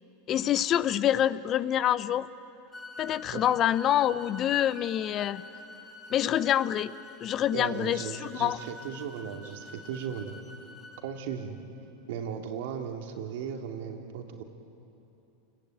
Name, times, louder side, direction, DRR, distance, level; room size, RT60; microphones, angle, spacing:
voice 1, 0.3-2.3 3.0-5.4 6.1-6.9 7.2-8.6, left 11 dB, 40° left, 17 dB, 0.7 m, -26 dB
sound 1, 2.7-11.0, left 2 dB, 15° left, 4.7 m, -47 dB
voice 2, 7.5-10.4 11.0-11.6 12.1-14.4, right 7 dB, 70° right, 3 dB, 2.8 m, -36 dB
29.0 x 22.0 x 9.1 m, 2.9 s
hypercardioid pair, 115°, 0 cm